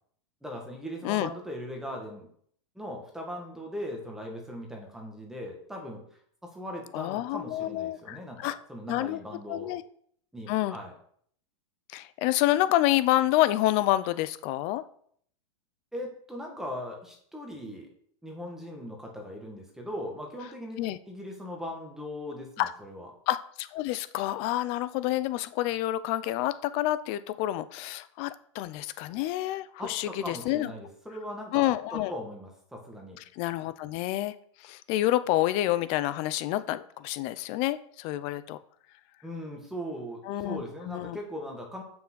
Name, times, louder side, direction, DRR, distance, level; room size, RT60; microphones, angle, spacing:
voice 1, 0.4-2.3 2.8-6.0 6.4-9.7 10.3-10.9 15.9-17.9 18.2-23.1 29.8-33.2 39.2-41.8, equal, 5° right, 0 dB, 2.1 m, -39 dB
voice 2, 6.9-8.6 8.9-9.2 9.5-9.8 10.5-10.8 11.9-14.8 20.8-21.0 22.6-22.7 23.3-30.7 31.5-32.1 33.3-34.3 34.6-38.6 40.3-41.2, left 15 dB, 40° left, 15 dB, 0.7 m, -28 dB
7.3 x 6.2 x 6.4 m, 0.62 s
supercardioid pair, 150°, 16 cm